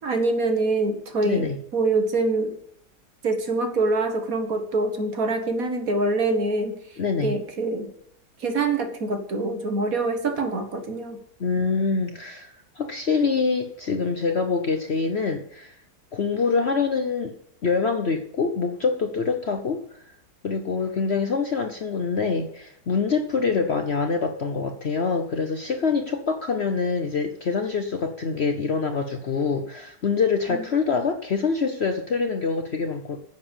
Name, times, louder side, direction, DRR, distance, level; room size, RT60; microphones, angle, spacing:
voice 1, 0.0-2.5 3.2-6.8 7.2-7.9 8.4-11.2 30.5-30.6, right 2 dB, 55° right, 6 dB, 1.9 m, -25 dB
voice 2, 1.2-1.6 7.0-7.4 11.4-15.7 16.1-17.3 17.6-19.8 20.4-33.2, left 5 dB, 50° left, 6 dB, 0.9 m, -25 dB
10.0 x 8.0 x 7.3 m, 0.67 s
omnidirectional pair, 1.9 m